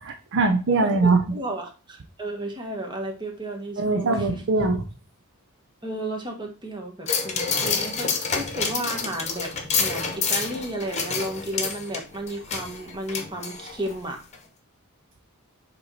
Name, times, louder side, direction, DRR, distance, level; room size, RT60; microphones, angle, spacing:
voice 1, 0.0-1.2 3.8-4.8, right 3 dB, 55° right, 5 dB, 0.6 m, -21 dB
voice 2, 0.7-4.4 5.8-9.5 9.8-14.2, right 1 dB, 20° right, 1 dB, 1.3 m, -33 dB
Clothes Hangers Jingle Jangle, 7.1-14.0 14.3-14.4, left 5 dB, 30° left, 1.1 m, -28 dB
7.6 x 3.1 x 4.1 m, 0.34 s
head